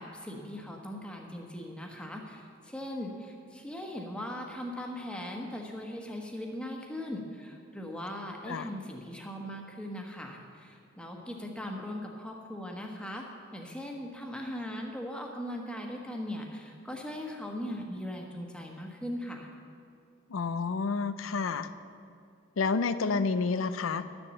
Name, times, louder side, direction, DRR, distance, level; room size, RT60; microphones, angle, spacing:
voice 1, 0.0-13.2 13.5-19.5, left 1 dB, 5° left, 1 dB, 1.2 m, -39 dB
voice 2, 20.3-21.7 22.6-24.0, left 4 dB, 90° left, 13 dB, 0.5 m, -29 dB
12.0 x 7.0 x 7.6 m, 2.4 s
head